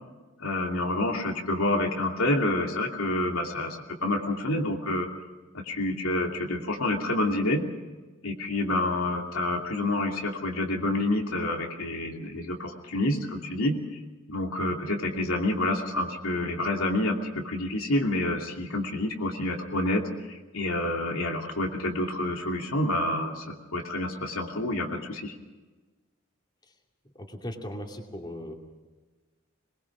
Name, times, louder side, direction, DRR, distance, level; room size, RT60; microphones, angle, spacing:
voice 1, 0.4-5.1 5.5-7.6 8.2-13.8 14.3-20.0 20.3-25.3, left 1 dB, 85° left, 1 dB, 2.8 m, -28 dB
voice 2, 27.1-28.6, equal, 20° left, 2 dB, 2.6 m, -38 dB
22.0 x 21.5 x 6.2 m, 1.2 s
head